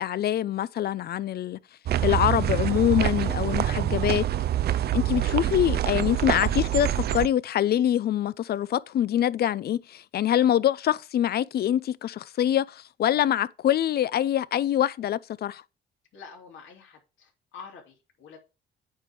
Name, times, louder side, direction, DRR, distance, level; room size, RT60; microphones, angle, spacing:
voice 1, 0.0-1.6 2.0-4.2 4.9-15.6, left 11 dB, 55° left, 0.4 m, -25 dB
sound 1, 1.9-7.3, right 12 dB, 55° right, 0.4 m, -26 dB
voice 2, 16.1-18.4, left 5 dB, 75° left, 2.9 m, -47 dB
8.7 x 3.5 x 6.1 m
cardioid pair, 90°, 20 cm